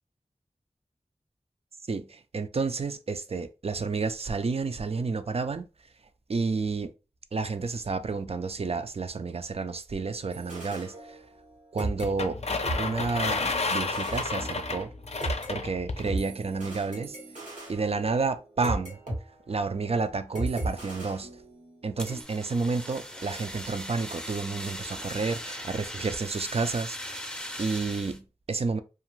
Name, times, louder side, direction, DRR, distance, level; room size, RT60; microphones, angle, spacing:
voice 1, 1.9-5.7 6.3-6.9 7.3-11.2 11.7-12.4 12.8-14.9 15.5-17.2 17.7-19.0 19.5-21.3 21.8-28.8, right 4 dB, 55° right, 0.4 m, -30 dB
sound 1, 10.3-11.5 11.8-15.5 16.1-19.2 19.5-19.7 20.3-21.8 22.1-22.2, right 2 dB, 90° right, 1.2 m, -37 dB
sound 2, 12.0-16.1, left 3 dB, 55° left, 0.5 m, -31 dB
Fire, 22.0-28.2, equal, 5° left, 0.5 m, -39 dB
2.5 x 2.5 x 3.0 m
wide cardioid pair, 40°, 13 cm